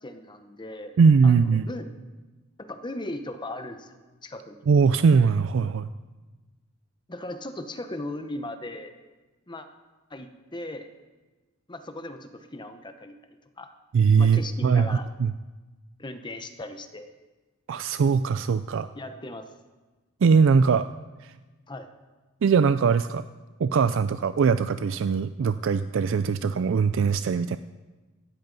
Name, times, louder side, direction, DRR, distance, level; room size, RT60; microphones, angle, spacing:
voice 1, 0.0-0.9 1.2-1.9 2.6-4.6 7.1-9.0 9.5-9.7 10.1-10.9 11.7-13.7 14.2-15.1 16.0-17.1 18.9-19.5 21.7-21.9, left 1 dB, 20° left, 8 dB, 0.9 m, -38 dB
voice 2, 1.0-1.7 4.7-5.9 13.9-15.3 17.7-18.9 20.2-20.9 21.2-21.3 22.4-23.2 23.6-27.6, right 5 dB, 65° right, 12 dB, 0.4 m, -21 dB
18.0 x 13.0 x 4.0 m, 1.2 s
head